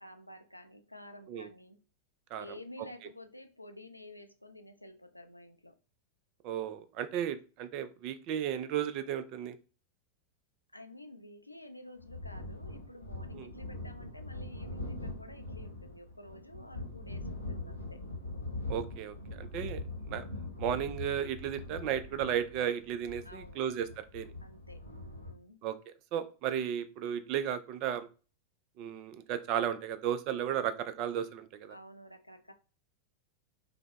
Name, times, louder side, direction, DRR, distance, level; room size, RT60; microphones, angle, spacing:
voice 1, 0.0-1.8 2.4-5.8 10.7-18.0 23.2-23.6 24.4-25.6 31.7-32.5, left 1 dB, 85° left, 0.3 m, -51 dB
voice 2, 6.4-9.6 13.3-13.5 18.7-19.8 20.1-20.2 20.6-24.3 25.6-28.1 28.8-31.8, right 9 dB, 40° right, 0.3 m, -34 dB
sound 1, 12.0-25.3, left 2 dB, 90° right, 0.8 m, -42 dB
4.9 x 2.0 x 2.2 m
figure-of-eight pair, 90°, 0 cm